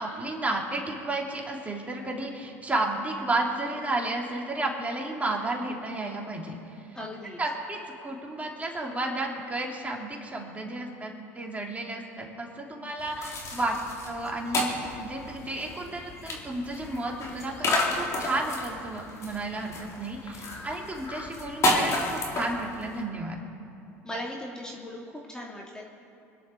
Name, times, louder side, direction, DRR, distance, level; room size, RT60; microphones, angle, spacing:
voice 1, 0.0-6.5 7.4-13.8 14.1-23.4, right 2 dB, 20° right, -1 dB, 3.4 m, -32 dB
voice 2, 6.9-7.4 24.0-25.8, left 1 dB, 10° left, -3 dB, 2.7 m, -38 dB
sound 1, 13.0-23.0, left 1 dB, 40° left, 3.7 m, -32 dB
26.0 x 11.0 x 4.7 m, 2.7 s
hypercardioid pair, 75°, 8 cm